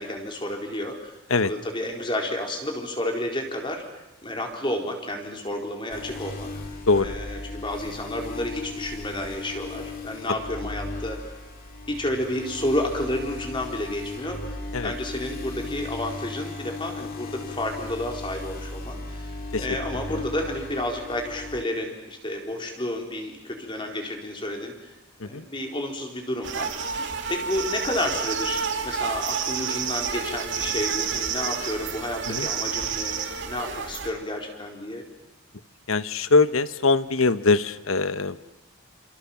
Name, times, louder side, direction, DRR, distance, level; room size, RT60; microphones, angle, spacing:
voice 1, 0.0-1.2 1.4-3.8 4.2-6.5 7.0-11.2 11.9-24.9 25.2-33.2 33.5-35.1, left 1 dB, 20° left, 2 dB, 4.2 m, -31 dB
sound 1, 5.9-21.6, left 2 dB, 40° left, 3.4 m, -36 dB
sound 2, 26.4-34.1, right 6 dB, 55° right, 2.9 m, -29 dB
voice 2, 35.9-38.4, left 3 dB, 65° left, 14 dB, 1.1 m, -22 dB
28.5 x 27.5 x 7.3 m, 0.98 s
head